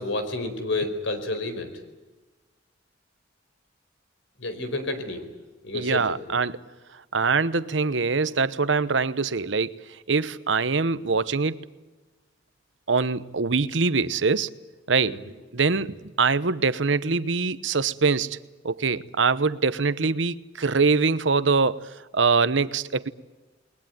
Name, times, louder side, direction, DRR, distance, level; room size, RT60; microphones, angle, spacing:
voice 1, 0.0-1.7 4.4-5.3 5.6-6.2 15.0-15.2, left 2 dB, 85° left, 4.6 m, -30 dB
voice 2, 5.7-6.6 7.1-9.7 10.1-11.6 12.9-14.5 14.9-15.2 15.5-18.4 18.6-23.1, right 4 dB, 75° right, 1.0 m, -23 dB
29.5 x 21.5 x 9.4 m
head